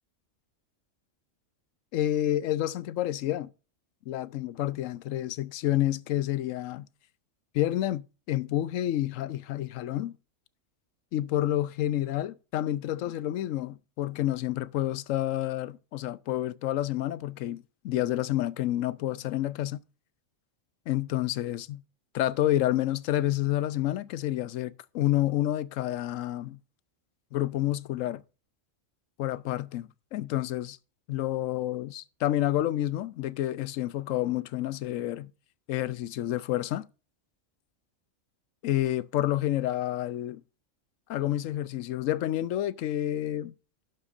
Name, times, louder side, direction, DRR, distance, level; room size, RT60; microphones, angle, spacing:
voice 1, 1.9-3.5 4.1-6.9 7.5-10.2 11.1-19.8 20.9-21.8 22.1-26.6 27.3-28.2 29.2-30.8 31.1-35.3 35.7-36.9 38.6-40.4 41.1-43.5, left 13 dB, 80° left, 1.0 m, -29 dB
11.5 x 7.9 x 2.5 m
omnidirectional pair, 1.3 m